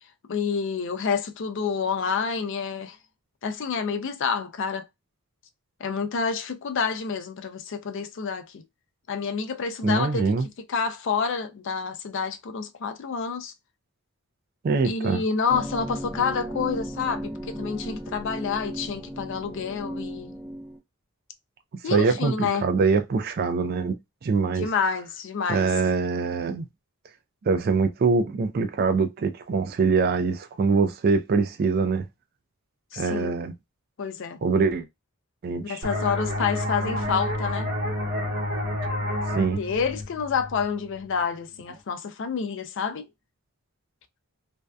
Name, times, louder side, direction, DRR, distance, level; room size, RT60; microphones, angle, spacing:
voice 1, 0.3-3.0 3.4-4.9 5.8-8.6 9.1-10.3 10.7-13.5 14.8-20.3 21.8-22.7 24.6-25.7 32.9-33.4 34.0-34.4 35.6-37.7 39.6-43.1, left 5 dB, 60° left, 0.4 m, -28 dB
voice 2, 9.8-10.5 14.6-15.2 21.9-24.0 24.2-24.7 25.5-26.7 27.5-32.1 32.9-33.5 34.4-34.9 35.4-35.8 39.3-39.6, right 4 dB, 45° right, 0.3 m, -23 dB
sound 1, 15.5-20.8, right 1 dB, 5° right, 0.6 m, -35 dB
sound 2, 35.8-41.2, left 1 dB, 60° right, 1.1 m, -29 dB
2.6 x 2.2 x 2.2 m
head